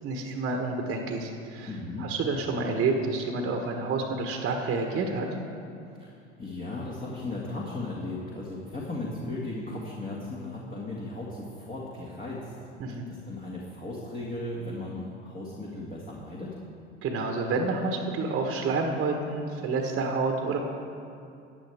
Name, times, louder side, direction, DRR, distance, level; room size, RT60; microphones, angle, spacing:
voice 1, 0.0-1.7 2.0-5.3 12.8-13.1 17.0-20.6, right 3 dB, 35° right, 2 dB, 1.3 m, -29 dB
voice 2, 1.7-2.1 6.0-12.5 13.1-16.6, left 2 dB, 25° left, -4 dB, 1.9 m, -36 dB
15.0 x 9.8 x 3.5 m, 2.6 s
hypercardioid pair, 85°, 35 cm